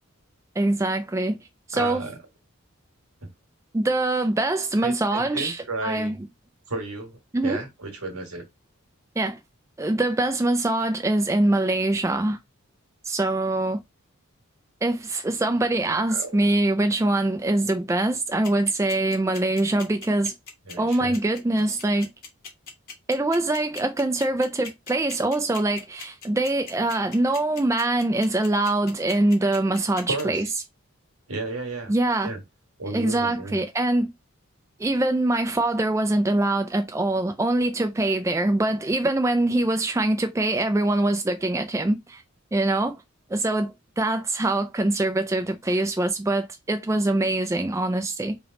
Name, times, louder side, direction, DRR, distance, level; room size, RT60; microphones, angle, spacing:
voice 1, 0.6-1.4 1.7-2.0 3.7-6.2 7.3-7.6 9.2-9.4 9.8-12.4 13.0-13.8 14.8-20.3 20.8-22.1 23.1-30.5 31.9-32.3 32.9-34.1 34.8-42.2 42.5-43.0 43.3-48.4, right 2 dB, 15° right, 0.3 m, -23 dB
voice 2, 1.7-2.1 3.2-3.3 4.8-6.2 6.7-8.4 16.1-16.5 20.6-21.2 30.1-30.4 31.3-32.0 32.2-32.4 32.8-33.6, right 2 dB, 85° right, 1.5 m, -33 dB
sound 1, 18.4-30.2, left 5 dB, 45° left, 1.4 m, -39 dB
3.4 x 3.0 x 3.7 m
head